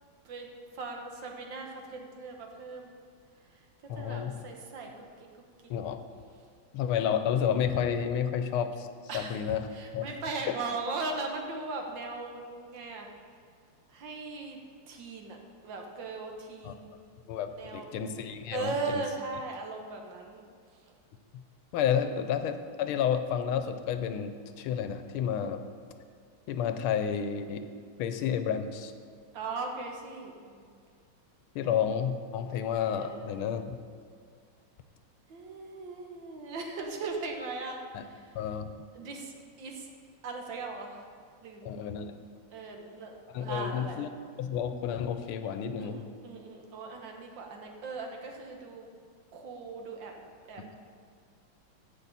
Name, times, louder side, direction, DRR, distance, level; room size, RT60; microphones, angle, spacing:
voice 1, 0.3-3.0 3.5-3.7 3.9-5.3 9.1-13.1 13.9-14.6 14.9-15.4 15.6-17.0 17.5-18.0 18.5-20.4 20.7-20.8 22.0-22.1 29.3-30.7 31.6-31.8 33.0-33.5 35.3-38.4 38.9-39.9 40.2-41.1 41.4-41.7 42.5-44.0 45.8-48.9 49.3-50.8, right 3 dB, 65° right, 2 dB, 1.8 m, -39 dB
voice 2, 3.9-4.3 5.7-6.0 6.7-8.9 9.1-9.6 9.9-10.0 16.6-16.7 17.3-19.0 21.3-21.4 21.7-25.6 26.5-27.7 28.0-28.9 31.5-33.8 37.9-38.0 38.3-38.7 41.6-42.1 43.3-44.1 44.4-46.0, left 8 dB, 90° left, 9 dB, 1.5 m, -30 dB
15.0 x 6.0 x 4.1 m, 2.1 s
omnidirectional pair, 2.3 m